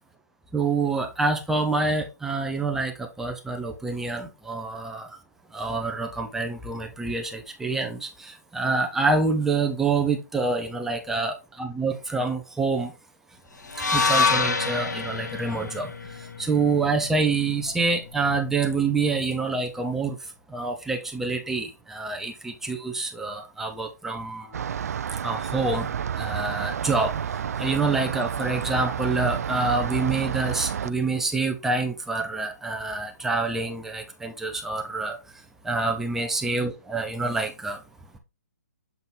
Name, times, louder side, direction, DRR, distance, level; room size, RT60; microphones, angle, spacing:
voice 1, 0.5-5.2 5.5-12.9 13.8-20.2 20.5-24.6 25.2-25.9 26.2-27.1 27.6-35.2 35.6-37.8, right 3 dB, 5° right, 0.9 m, -27 dB
sound 1, 13.7-17.9, left 4 dB, 85° left, 1.0 m, -27 dB
sound 2, 24.5-30.9, right 8 dB, 60° right, 0.4 m, -30 dB
7.4 x 3.9 x 3.5 m
hypercardioid pair, 140°, 9 cm